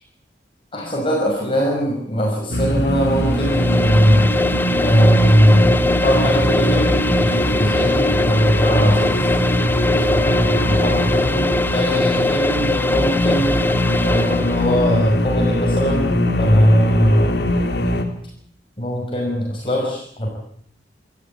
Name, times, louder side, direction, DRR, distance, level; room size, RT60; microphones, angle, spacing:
voice 1, 0.7-5.7 6.0-9.3 10.1-13.6 14.0-16.1 16.4-17.5 18.8-20.3, equal, 30° left, -2 dB, 5.8 m, -19 dB
sound 1, 2.5-18.0, left 1 dB, 60° left, 3.4 m, -21 dB
sound 2, 3.1-14.8, left 2 dB, 10° left, 0.9 m, -22 dB
27.5 x 14.0 x 8.6 m, 0.65 s
head